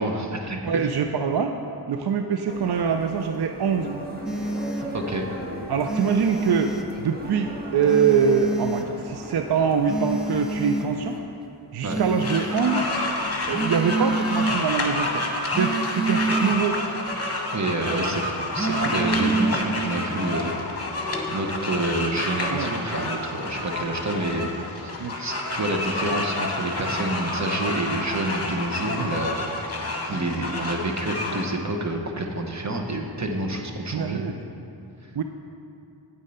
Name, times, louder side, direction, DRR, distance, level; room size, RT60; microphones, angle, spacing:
voice 1, 0.0-0.9 4.9-5.3 11.8-12.0 17.5-20.5 21.3-24.9 25.2-34.2, right 2 dB, 40° right, 2 dB, 1.1 m, -28 dB
voice 2, 0.6-1.5 1.9-4.0 5.7-11.2 11.7-12.9 13.5-15.2 15.5-16.8 22.5-22.8 23.4-23.5 25.0-25.1 29.0-29.1 30.1-30.2 33.9-34.3 35.2-35.3, right 6 dB, 60° right, 6 dB, 0.5 m, -24 dB
sound 1, 2.5-11.2, equal, 20° right, 1.4 m, -38 dB
sound 2, 4.3-4.9 5.9-6.9 7.9-8.9 9.9-10.9 11.9-12.9 13.5-14.6 15.5-16.6 18.5-19.6, right 3 dB, ahead, 0.5 m, -27 dB
sound 3, 12.2-31.4, left 2 dB, 35° left, 1.1 m, -29 dB
9.0 x 7.3 x 5.5 m, 2.6 s
wide cardioid pair, 85°, 43 cm